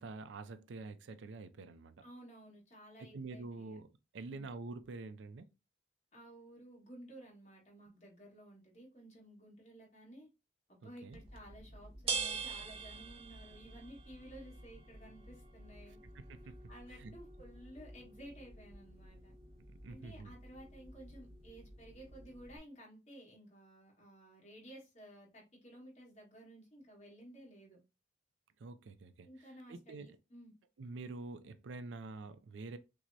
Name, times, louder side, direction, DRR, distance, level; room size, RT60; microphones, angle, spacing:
voice 1, 0.0-2.0 3.0-5.5 10.8-11.2 16.3-17.2 19.7-20.3 28.6-30.2 30.8-32.8, right 3 dB, 75° right, 0.4 m, -47 dB
voice 2, 2.0-3.8 4.1-4.5 6.1-10.3 10.7-16.0 16.4-19.3 19.9-27.8 29.2-30.5, right 1 dB, 35° left, 1.5 m, -55 dB
sound 1, 11.1-22.6, right 4 dB, 30° right, 0.7 m, -46 dB
5.9 x 2.0 x 2.7 m
head